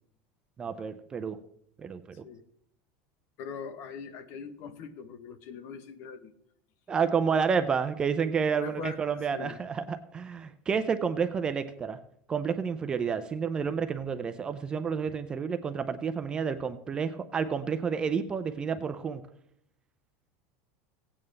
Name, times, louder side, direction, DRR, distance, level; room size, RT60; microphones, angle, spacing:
voice 1, 0.6-1.4 1.8-2.2 6.9-12.0 12.3-19.2, right 6 dB, 15° right, 9 dB, 0.4 m, -30 dB
voice 2, 3.4-6.3 8.5-9.0 9.3-9.6, left 6 dB, 40° left, 12 dB, 0.8 m, -41 dB
17.0 x 8.7 x 3.2 m, 0.71 s
cardioid pair, 180°, 6 cm